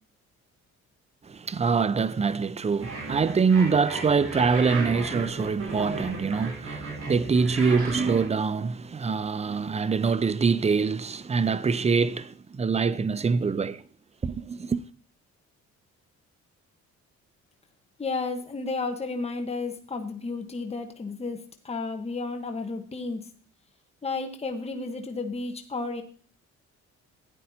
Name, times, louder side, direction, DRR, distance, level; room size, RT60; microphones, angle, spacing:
voice 1, 1.2-13.8 14.2-14.8, right 5 dB, 20° right, 0.5 m, -24 dB
sound 1, 2.8-8.3, right 3 dB, 55° right, 4.4 m, -35 dB
voice 2, 18.0-23.3 24.0-26.0, left 3 dB, 20° left, 1.2 m, -32 dB
13.0 x 9.3 x 2.8 m
cardioid pair, 90°, 30 cm